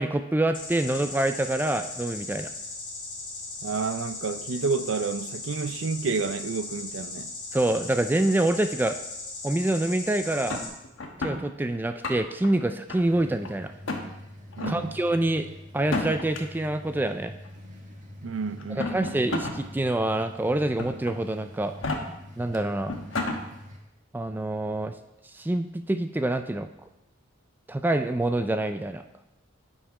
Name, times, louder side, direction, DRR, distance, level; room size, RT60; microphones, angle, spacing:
voice 1, 0.0-2.5 7.5-9.0 9.4-10.6 11.2-13.7 14.7-15.5 15.7-17.3 18.8-21.7 22.4-22.9 24.1-24.9 25.2-26.7 27.7-29.0, right 1 dB, 10° right, 0.3 m, -26 dB
sound 1, 0.5-10.7, left 2 dB, 25° left, 2.3 m, -38 dB
voice 2, 3.6-7.3 14.6-15.0 18.2-19.2, right 4 dB, 80° right, 0.5 m, -30 dB
sound 2, 10.5-11.4 11.9-12.5 12.9-13.5 13.8-14.0 14.5-14.8 15.8-16.4 17.4-17.5 18.6-19.6 20.0-20.1 20.8-21.1 21.7-22.0 22.5-22.6 22.9-23.4, left 2 dB, 85° left, 1.1 m, -31 dB
sound 3, 13.0-23.8, left 1 dB, 45° right, 1.8 m, -45 dB
8.7 x 5.5 x 4.8 m
head